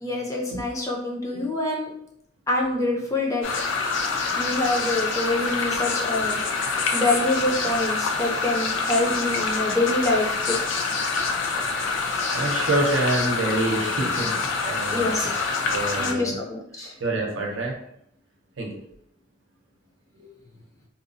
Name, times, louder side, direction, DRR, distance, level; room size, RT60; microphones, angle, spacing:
voice 1, 0.0-1.9 2.5-3.4 4.4-6.4 6.9-10.6 14.9-15.5 15.9-16.9, left 2 dB, 15° left, -2 dB, 0.5 m, -26 dB
sound 1, 3.4-16.1, left 4 dB, 85° left, 0.4 m, -26 dB
voice 2, 12.3-15.1 15.7-16.4 17.0-17.8 18.6-18.7 20.1-20.3, right 2 dB, 85° right, 0 dB, 0.6 m, -27 dB
2.7 x 2.0 x 2.6 m, 0.73 s
head